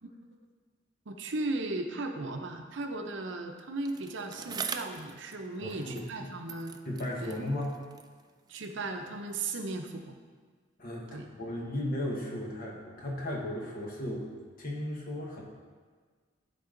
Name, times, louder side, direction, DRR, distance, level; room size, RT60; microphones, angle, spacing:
voice 1, 1.1-6.8 7.2-7.3 8.5-10.2 11.1-11.3, right 2 dB, 70° right, 4 dB, 0.7 m, -36 dB
Bicycle, 3.8-6.2 6.5-8.9 9.6-9.7, right 6 dB, 20° right, 0.3 m, -43 dB
voice 2, 5.6-6.3 6.8-7.8 10.8-14.3 14.6-15.5, left 1 dB, 50° left, -2 dB, 1.4 m, -35 dB
12.0 x 4.1 x 3.8 m, 1.5 s
head